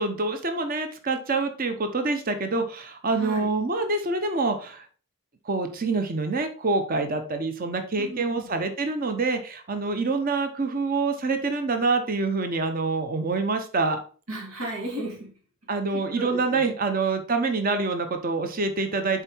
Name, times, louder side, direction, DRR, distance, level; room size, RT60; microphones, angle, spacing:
voice 1, 0.0-4.8 5.5-14.0 15.7-19.2, right 3 dB, 40° right, 7 dB, 0.8 m, -26 dB
voice 2, 3.2-3.5 8.0-8.5 14.3-15.3 15.9-16.7, right 1 dB, 90° right, -3 dB, 2.3 m, -34 dB
7.4 x 4.6 x 4.5 m, 0.40 s
head